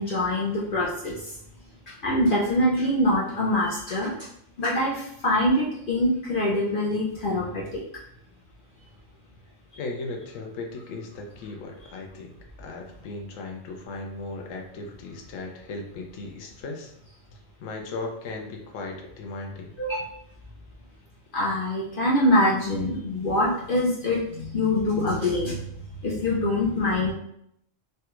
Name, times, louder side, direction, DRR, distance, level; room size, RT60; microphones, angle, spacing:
voice 1, 0.0-1.3 1.9-4.1 4.6-7.8 19.8-20.0 21.3-25.6 26.0-27.1, left 1 dB, 55° left, -5 dB, 0.6 m, -24 dB
voice 2, 9.8-16.9 17.6-19.7, left 3 dB, 80° left, 2 dB, 1.0 m, -37 dB
3.2 x 2.3 x 2.9 m, 0.73 s
omnidirectional pair, 1.3 m